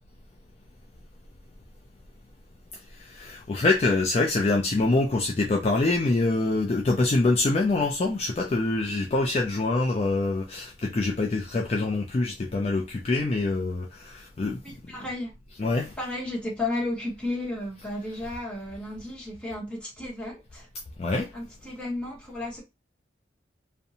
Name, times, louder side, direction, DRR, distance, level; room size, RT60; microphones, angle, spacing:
voice 1, 2.9-14.6 15.6-15.9 21.0-21.3, left 2 dB, 35° left, 0.3 m, -25 dB
voice 2, 14.6-15.3 16.0-20.7 21.3-22.6, left 2 dB, 5° left, 1.0 m, -33 dB
2.6 x 2.1 x 2.7 m
head